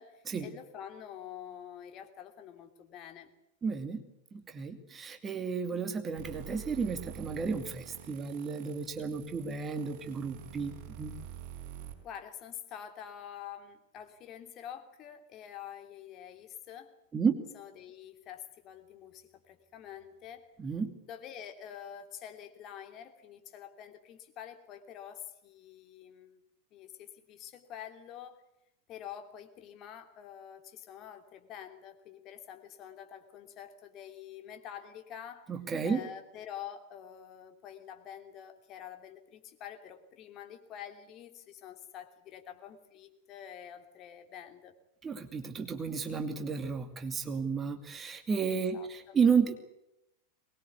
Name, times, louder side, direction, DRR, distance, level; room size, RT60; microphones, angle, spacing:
voice 1, 0.0-3.3 12.0-16.9 17.5-20.5 21.1-26.4 26.7-28.4 28.9-35.5 35.8-44.7 48.7-49.2, left 9 dB, 35° left, 6 dB, 3.1 m, -47 dB
voice 2, 3.6-4.0 4.3-11.1 17.1-17.4 20.6-20.9 35.5-36.0 45.0-49.6, right 5 dB, 20° right, 7 dB, 2.5 m, -32 dB
sound 1, 6.2-11.9, right 10 dB, 45° right, 5.6 m, -47 dB
23.0 x 21.0 x 8.3 m, 0.85 s
figure-of-eight pair, 90°, 0 cm